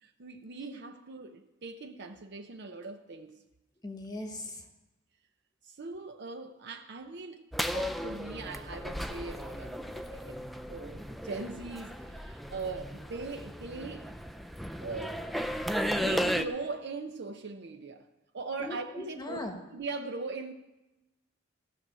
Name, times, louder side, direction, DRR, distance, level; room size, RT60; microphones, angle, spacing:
voice 1, 0.0-3.3 5.6-7.4 7.7-10.4 10.7-14.1 14.8-15.2 15.9-18.1 18.3-19.4 19.7-20.5, right 3 dB, 55° right, 0.7 m, -40 dB
voice 2, 3.8-4.7 18.6-19.6, left 1 dB, 20° left, 1.1 m, -39 dB
sound 1, 7.5-16.5, equal, ahead, 0.4 m, -35 dB
15.0 x 6.2 x 8.8 m
head